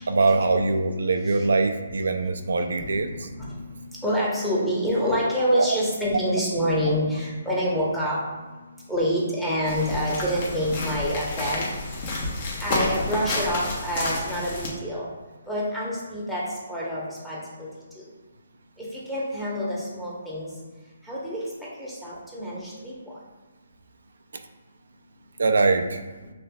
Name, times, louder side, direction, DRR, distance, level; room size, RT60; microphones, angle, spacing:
voice 1, 0.1-3.1 5.6-5.8 25.4-26.0, right 3 dB, 80° right, 6 dB, 0.3 m, -22 dB
voice 2, 2.8-3.6 4.0-8.2 8.9-11.7 12.6-15.1 15.5-16.4 16.7-17.7 18.0-18.1 18.8-20.5 21.1-21.4 21.8-22.9, equal, 5° left, -8 dB, 0.9 m, -27 dB
sound 1, 9.6-14.7, left 2 dB, 35° left, 0.9 m, -30 dB
5.4 x 3.3 x 2.3 m, 1.2 s
hypercardioid pair, 160°, 0 cm